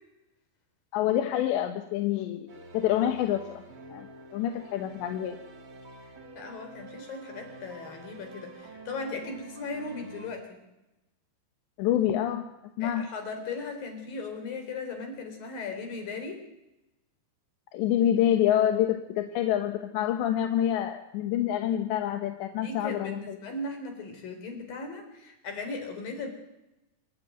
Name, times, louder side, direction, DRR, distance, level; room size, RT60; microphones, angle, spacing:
voice 1, 0.9-2.5 2.7-3.4 3.9-4.1 4.3-5.4 11.8-12.4 12.8-13.1 17.7-23.4, left 11 dB, 80° left, 7 dB, 3.4 m, -27 dB
sound 1, 2.5-10.3, right 3 dB, 35° right, 2.9 m, -47 dB
voice 2, 6.4-10.6 12.8-16.4 22.6-26.3, left 3 dB, 55° left, 6 dB, 5.5 m, -37 dB
27.0 x 13.5 x 9.4 m, 0.94 s
omnidirectional pair, 5.0 m